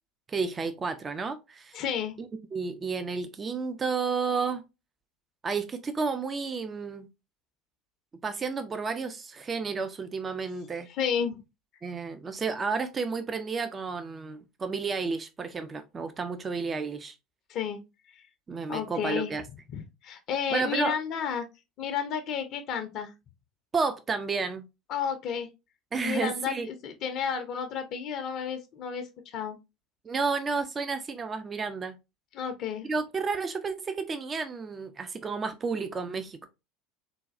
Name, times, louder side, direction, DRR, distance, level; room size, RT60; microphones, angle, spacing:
voice 1, 0.3-1.8 2.2-4.6 5.4-7.1 8.2-10.9 11.8-17.2 18.5-19.4 20.5-20.9 23.7-24.7 25.9-26.7 30.0-32.0 32.8-36.5, right 4 dB, 25° right, 0.4 m, -31 dB
voice 2, 1.7-2.1 11.0-11.4 17.5-17.8 18.1-18.2 18.7-19.3 19.7-21.5 21.8-23.1 24.9-25.5 26.0-29.6 32.3-32.9, left 7 dB, 50° left, 0.5 m, -31 dB
3.9 x 2.2 x 2.4 m
figure-of-eight pair, 70°, 0 cm